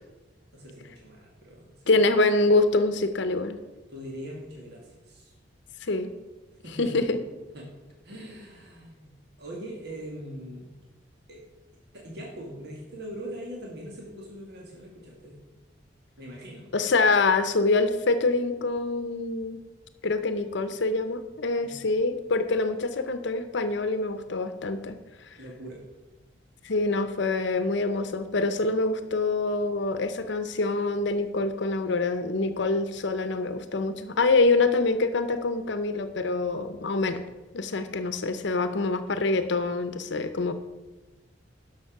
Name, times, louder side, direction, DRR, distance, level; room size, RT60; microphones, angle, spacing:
voice 1, 0.5-2.0 3.9-5.3 6.6-7.1 7.5-7.7 8.0-9.1 9.4-10.7 11.3-11.4 11.9-15.4 16.2-16.7 21.6-21.8 25.4-25.8, equal, 60° right, -2 dB, 1.9 m, -41 dB
voice 2, 1.9-3.6 5.8-6.1 6.8-7.2 16.7-19.6 20.0-25.0 26.6-37.2 37.5-40.5, left 3 dB, 70° left, 10 dB, 0.7 m, -25 dB
11.0 x 6.1 x 5.9 m, 1.2 s
head